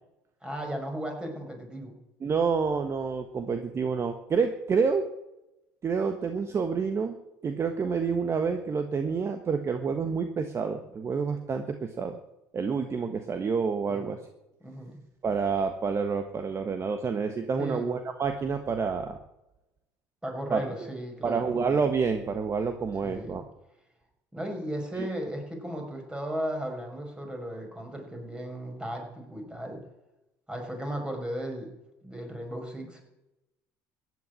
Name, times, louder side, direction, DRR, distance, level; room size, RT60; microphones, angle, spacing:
voice 1, 0.4-2.0 13.9-14.1 14.6-15.0 17.6-17.9 20.2-21.6 23.0-23.4 24.3-29.8 30.5-31.7 32.0-33.0, right 1 dB, 10° right, 2 dB, 5.7 m, -35 dB
voice 2, 2.2-5.1 5.8-7.2 7.4-12.2 12.5-14.2 15.2-19.2 20.5-20.6 21.2-23.4 25.0-25.1, right 5 dB, 35° right, 7 dB, 1.4 m, -28 dB
15.5 x 9.6 x 9.7 m, 0.94 s
supercardioid pair, 90°, 8 cm